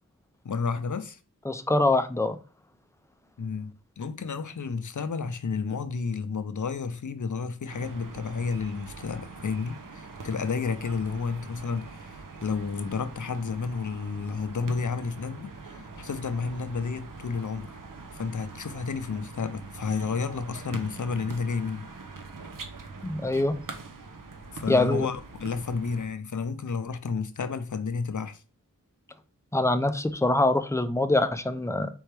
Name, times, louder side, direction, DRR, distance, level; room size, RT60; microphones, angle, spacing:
voice 1, 0.4-1.2 3.4-17.8 18.1-21.9 24.5-28.4, left 5 dB, 60° left, 0.6 m, -31 dB
voice 2, 1.5-2.4 23.0-23.5 24.7-25.1 29.5-31.9, left 2 dB, 10° left, 0.5 m, -24 dB
sound 1, 7.7-26.1, right 3 dB, 70° right, 0.8 m, -43 dB
4.5 x 3.5 x 3.3 m
wide cardioid pair, 40°, 34 cm